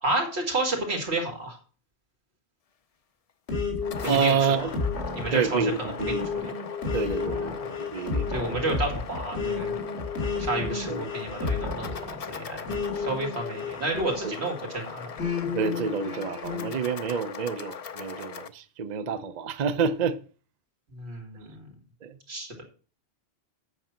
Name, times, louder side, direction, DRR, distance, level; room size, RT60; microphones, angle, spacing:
voice 1, 0.0-1.6 4.0-4.7 5.1-6.5 7.2-7.7 8.3-9.7 10.4-15.1 20.9-21.7 22.3-22.6, right 2 dB, 90° right, 2.4 m, -31 dB
sound 1, 3.5-14.6 15.2-16.7, left 4 dB, 85° left, 2.3 m, -32 dB
sound 2, 3.6-18.5, left 7 dB, 45° left, 0.5 m, -40 dB
voice 2, 4.1-4.7 5.3-6.3 6.9-8.3 10.9-11.1 14.2-14.3 15.5-20.2 22.0-22.2, right 6 dB, 50° right, 0.6 m, -28 dB
8.0 x 6.0 x 5.8 m
omnidirectional pair, 1.1 m